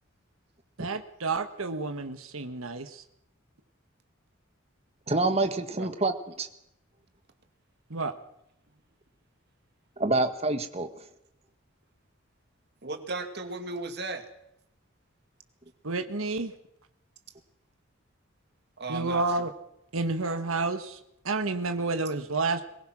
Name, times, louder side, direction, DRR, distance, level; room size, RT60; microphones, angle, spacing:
voice 1, 0.8-3.0 7.9-8.1 15.8-16.5 18.9-19.5 19.9-21.0 21.2-22.6, right 3 dB, 75° right, 8 dB, 1.4 m, -30 dB
voice 2, 5.1-6.5 10.0-10.9, right 2 dB, 30° right, 8 dB, 1.6 m, -27 dB
voice 3, 12.8-14.3 18.8-19.2, right 3 dB, 50° right, 7 dB, 2.1 m, -35 dB
22.5 x 20.5 x 6.2 m, 0.79 s
head